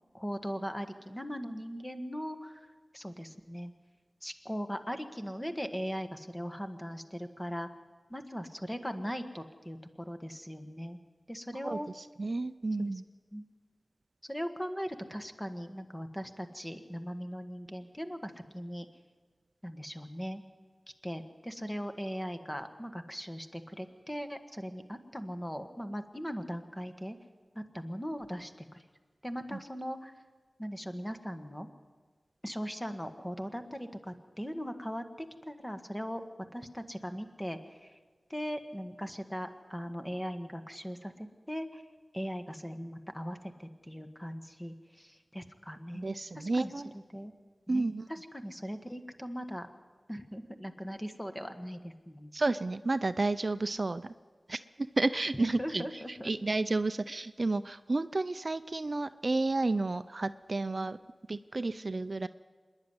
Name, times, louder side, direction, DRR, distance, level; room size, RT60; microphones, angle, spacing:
voice 1, 0.1-2.7 2.9-3.7 4.2-7.7 8.1-11.0 11.3-11.9 12.8-12.9 13.3-13.4 14.3-18.8 19.6-20.4 21.0-27.2 27.5-28.8 29.2-30.1 30.6-31.7 32.4-36.2 36.5-38.0 38.3-41.8 42.1-46.1 46.3-47.3 47.7-49.7 50.1-52.3 55.4-56.3, equal, 10° left, 7 dB, 1.5 m, -39 dB
voice 2, 11.6-13.0 29.5-29.6 46.0-46.9 47.7-48.1 52.3-54.1 54.5-54.6 55.0-61.0 61.3-62.3, right 2 dB, 45° right, 12 dB, 0.5 m, -31 dB
25.5 x 10.5 x 9.7 m, 1.5 s
wide cardioid pair, 70°, 0 cm